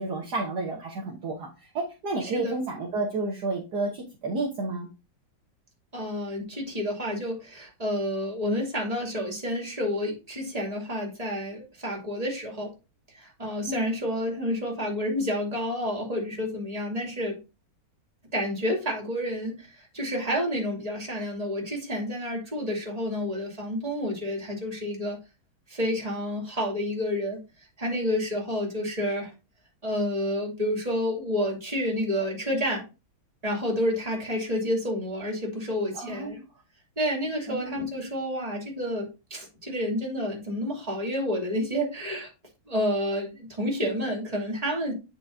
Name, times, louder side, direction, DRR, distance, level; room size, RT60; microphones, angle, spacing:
voice 1, 0.0-1.5 1.7-4.9 13.7-13.9 35.9-36.4 37.5-37.7, right 2 dB, 55° right, -2 dB, 1.7 m, -31 dB
voice 2, 2.2-2.5 5.9-12.7 13.1-17.3 18.3-19.7 19.9-25.2 25.7-27.4 27.8-29.3 29.8-32.8 33.4-36.4 37.0-42.3 42.7-44.9, equal, 20° right, -2 dB, 2.8 m, -29 dB
8.7 x 6.1 x 2.7 m, 0.29 s
omnidirectional pair, 2.2 m